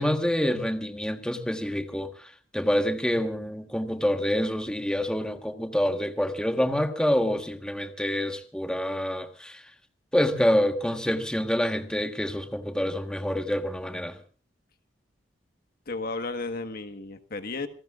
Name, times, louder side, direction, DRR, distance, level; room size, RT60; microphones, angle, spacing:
voice 1, 0.0-2.1 2.5-9.6 10.1-14.2, equal, 5° left, 6 dB, 1.4 m, -27 dB
voice 2, 15.9-17.7, left 3 dB, 55° left, 8 dB, 1.5 m, -33 dB
28.0 x 19.0 x 2.5 m, 0.38 s
head